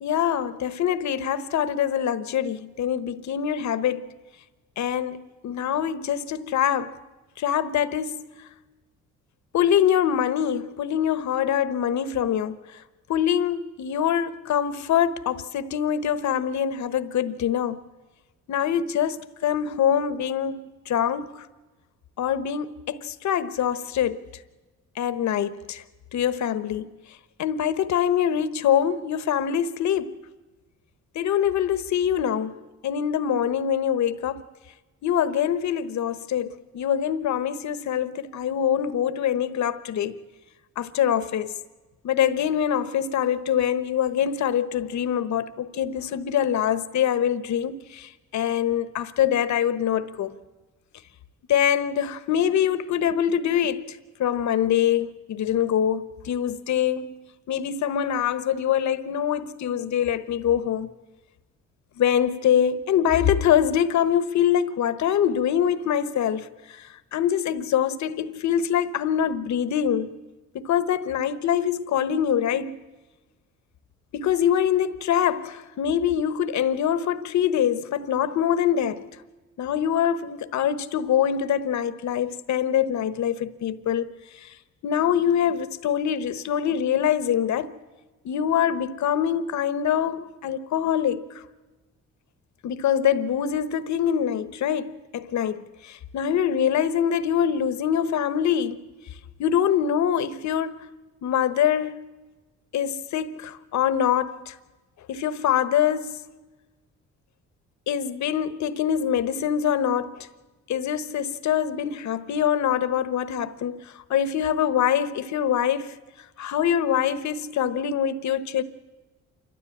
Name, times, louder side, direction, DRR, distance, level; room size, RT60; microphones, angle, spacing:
voice 1, 0.0-4.1 4.8-6.9 7.4-8.5 9.5-12.8 13.1-17.8 18.5-21.5 22.2-24.4 25.0-25.8 26.1-26.9 27.4-30.2 31.1-34.5 35.0-40.2 40.8-41.5 42.0-50.3 51.5-57.2 57.5-60.9 62.0-70.1 70.5-72.7 74.1-79.0 79.6-84.1 84.3-84.5 84.8-87.8 88.2-91.4 92.6-98.8 99.4-100.9 101.2-102.0 102.7-104.6 105.1-106.2 107.9-110.3 110.7-116.0 116.4-118.6, left 9 dB, 65° left, 1.1 m, -24 dB
28.0 x 13.0 x 8.5 m
cardioid pair, 90°, 30 cm